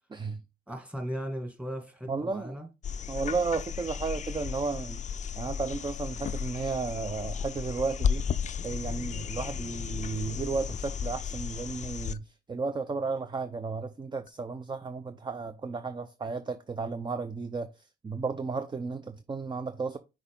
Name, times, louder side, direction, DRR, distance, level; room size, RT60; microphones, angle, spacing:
voice 1, 0.1-0.4 2.1-2.6 3.1-5.0 5.4-8.2 8.6-17.7 18.0-20.0, right 4 dB, 25° right, 0.6 m, -33 dB
voice 2, 0.7-2.7, equal, 5° right, 2.2 m, -37 dB
sound 1, 2.8-12.2 14.3-14.4, left 7 dB, 35° left, 0.4 m, -34 dB
6.2 x 4.5 x 3.7 m
cardioid pair, 90°, 20 cm